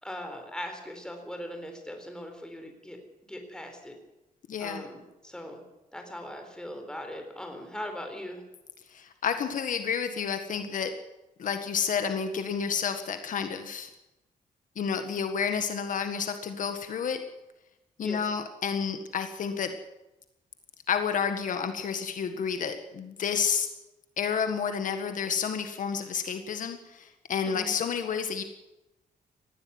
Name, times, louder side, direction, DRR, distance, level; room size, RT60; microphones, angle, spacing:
voice 1, 0.0-3.0 3.2-3.9 4.6-5.6 5.9-8.4 18.0-18.3 27.4-27.8, left 1 dB, 5° left, 4 dB, 4.1 m, -40 dB
voice 2, 4.5-4.8 8.9-10.9 11.4-13.9 14.7-17.2 18.0-19.7 20.9-23.7 24.2-28.4, left 6 dB, 60° left, 7 dB, 1.7 m, -30 dB
19.0 x 15.0 x 9.5 m, 0.97 s
wide cardioid pair, 155°, 15 cm